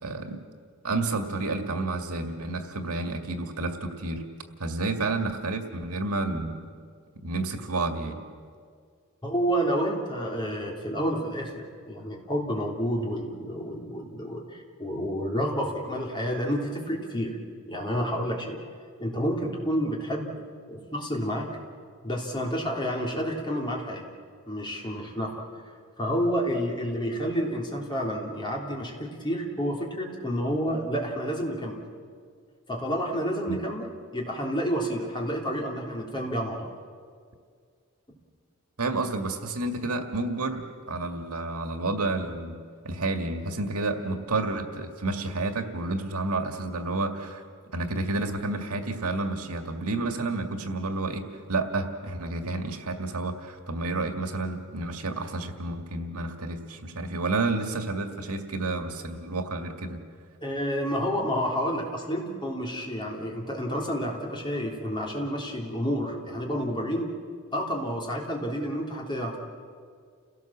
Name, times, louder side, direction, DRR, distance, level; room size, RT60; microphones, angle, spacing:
voice 1, 0.0-0.4 0.8-4.3 4.6-6.6 7.2-8.2 33.5-33.6 38.8-42.6 42.8-47.4 47.7-60.0, right 2 dB, 85° right, 5 dB, 2.0 m, -30 dB
voice 2, 9.2-17.4 17.7-18.6 19.0-20.3 20.7-21.5 22.0-24.0 24.5-25.4 26.0-31.8 32.7-36.7 60.4-67.1 67.5-69.4, equal, 20° left, -1 dB, 3.4 m, -29 dB
29.5 x 17.5 x 7.4 m, 2.1 s
head